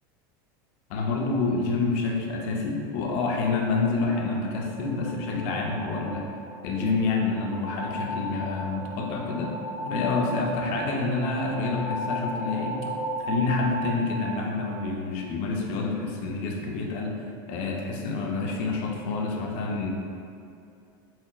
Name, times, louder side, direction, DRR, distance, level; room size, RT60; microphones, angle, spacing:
voice 1, 0.9-6.3 6.6-9.5 9.8-12.9 13.3-17.1 17.5-19.9, left 3 dB, 60° left, 1 dB, 0.5 m, -28 dB
sound 1, 3.8-15.1, equal, 10° right, 0.8 m, -36 dB
5.6 x 2.1 x 2.3 m, 2.5 s
supercardioid pair, 130°, 12 cm